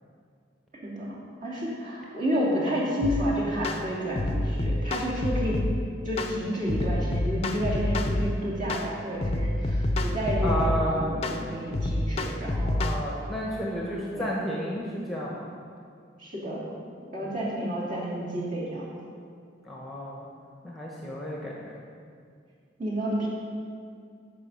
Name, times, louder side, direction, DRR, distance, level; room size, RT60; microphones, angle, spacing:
voice 1, 0.8-5.6 6.0-12.8 14.1-14.3 16.2-16.7 17.1-18.8 22.8-23.3, equal, 45° right, -6 dB, 2.8 m, -30 dB
sound 1, 3.0-3.2 3.6-3.8 4.2-5.8 6.2-6.4 6.7-8.3 8.7-8.9 9.2-10.8 11.2-11.4 11.7-13.0, left 1 dB, 35° left, 0.6 m, -27 dB
voice 2, 10.4-11.2 12.8-15.5 17.2-17.3 19.6-20.3 20.6-21.7, equal, ahead, -3 dB, 1.1 m, -32 dB
13.5 x 5.6 x 5.6 m, 2.2 s
head